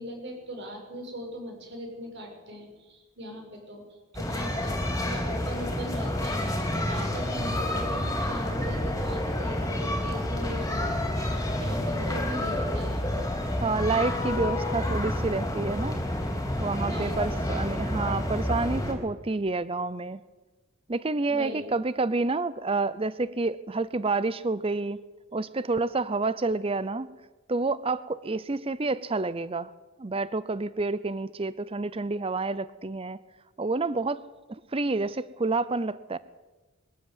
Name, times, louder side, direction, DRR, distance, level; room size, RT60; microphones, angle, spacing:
voice 1, 0.0-13.1 16.9-17.4 21.3-21.7, equal, 55° right, 2 dB, 6.5 m, -39 dB
sound 1, 4.1-18.9, left 1 dB, 15° left, 3.3 m, -29 dB
voice 2, 13.6-16.0 16.6-20.2 20.9-25.0 25.3-27.1 27.5-29.7 30.0-33.2 33.6-34.2 34.7-36.2, right 3 dB, 25° right, 17 dB, 0.6 m, -29 dB
22.0 x 13.0 x 9.4 m, 1.2 s
head